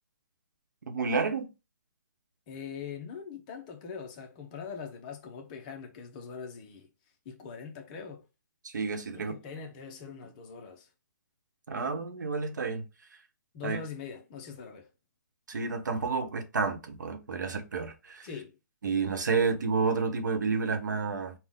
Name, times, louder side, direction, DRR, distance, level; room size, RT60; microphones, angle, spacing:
voice 1, 0.9-1.5 8.6-9.3 11.7-12.8 13.6-13.8 15.5-18.3 18.8-21.3, right 4 dB, 70° right, 1.1 m, -30 dB
voice 2, 2.5-6.9 7.2-8.2 9.1-10.9 13.5-14.9 18.2-18.6, left 6 dB, 25° left, 0.8 m, -42 dB
5.8 x 2.4 x 3.7 m
hypercardioid pair, 160°, 10 cm